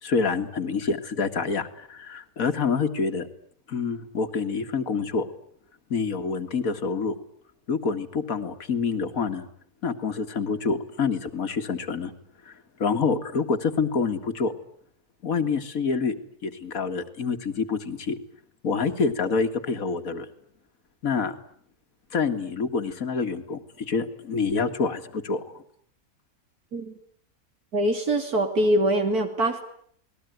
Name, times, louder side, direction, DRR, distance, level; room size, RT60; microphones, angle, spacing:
voice 1, 0.0-3.3 3.7-5.3 5.9-7.2 7.7-9.5 9.8-12.1 12.5-12.6 12.8-14.5 15.2-16.2 16.4-18.2 18.6-20.3 21.0-21.3 22.1-25.6, left 5 dB, 65° left, 7 dB, 2.4 m, -27 dB
voice 2, 27.7-29.6, right 1 dB, 80° right, 3 dB, 3.2 m, -23 dB
29.5 x 20.5 x 9.4 m, 0.64 s
omnidirectional pair, 1.6 m